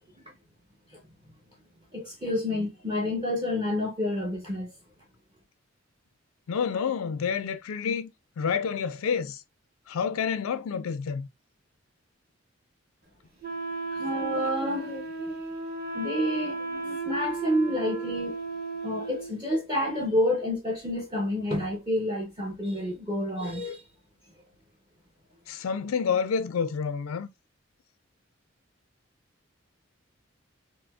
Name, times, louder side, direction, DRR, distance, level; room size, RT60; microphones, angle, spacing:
voice 1, 1.9-4.7 13.9-15.3 15.9-18.4 18.8-23.8, left 1 dB, 20° right, 0.7 m, -29 dB
voice 2, 6.5-8.1 8.4-9.4 9.9-11.3 25.5-27.3, left 6 dB, 85° left, 0.4 m, -28 dB
Wind instrument woodwind instrument, 13.4-19.3, right 3 dB, 45° right, 1.2 m, -34 dB
4.8 x 2.0 x 2.2 m
head